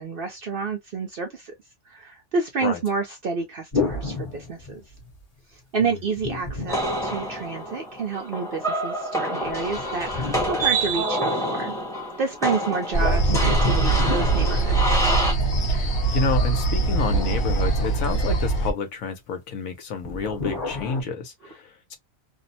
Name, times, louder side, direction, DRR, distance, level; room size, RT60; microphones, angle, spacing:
voice 1, 0.0-1.5 1.9-4.8 5.5-11.8 12.2-14.9, right 4 dB, 60° right, 0.6 m, -29 dB
sound 1, 3.7-5.1 6.2-7.7 9.4-11.5 13.0-15.5 16.6-18.5 20.0-21.0, left 3 dB, 30° left, 1.0 m, -31 dB
sound 2, 6.7-15.3, right 1 dB, 5° left, 0.9 m, -27 dB
sound 3, 12.9-18.7, right 3 dB, 55° left, 1.1 m, -22 dB
voice 2, 15.7-22.0, left 4 dB, 80° left, 1.2 m, -29 dB
2.8 x 2.1 x 2.6 m
omnidirectional pair, 1.4 m